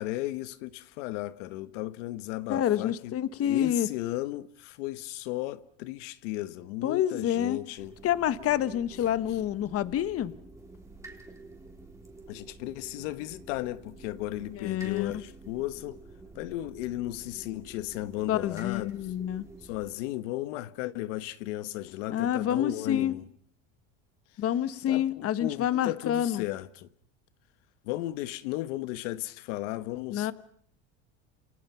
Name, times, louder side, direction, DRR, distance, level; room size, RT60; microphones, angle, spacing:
voice 1, 0.0-3.1 3.4-7.9 12.3-16.0 16.3-18.9 19.6-23.2 24.9-26.9 27.8-30.3, left 16 dB, 85° left, 1.3 m, -35 dB
voice 2, 2.5-3.9 6.8-7.6 8.0-10.3 14.5-15.1 18.3-19.4 22.1-23.1 24.4-26.4 30.1-30.3, left 11 dB, 40° left, 1.3 m, -28 dB
sound 1, 7.8-19.9, right 3 dB, 10° right, 4.4 m, -49 dB
29.0 x 28.5 x 5.7 m
supercardioid pair, 125°, 36 cm